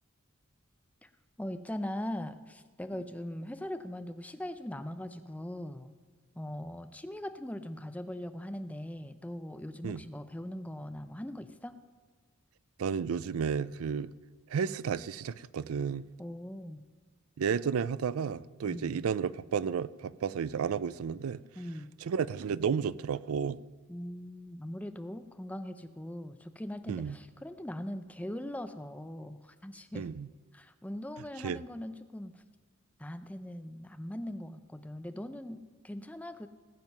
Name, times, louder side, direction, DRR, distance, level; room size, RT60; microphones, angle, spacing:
voice 1, 1.4-5.9 6.4-11.8 16.2-16.8 18.6-19.0 21.6-21.9 23.9-30.1 30.5-32.4 33.0-36.5, left 1 dB, 5° left, 0.5 m, -40 dB
voice 2, 12.8-14.1 14.5-16.0 17.4-21.4 22.0-23.6 26.9-27.2 29.9-30.3 31.4-31.6, right 6 dB, 85° right, 0.4 m, -32 dB
18.5 x 7.5 x 5.4 m
head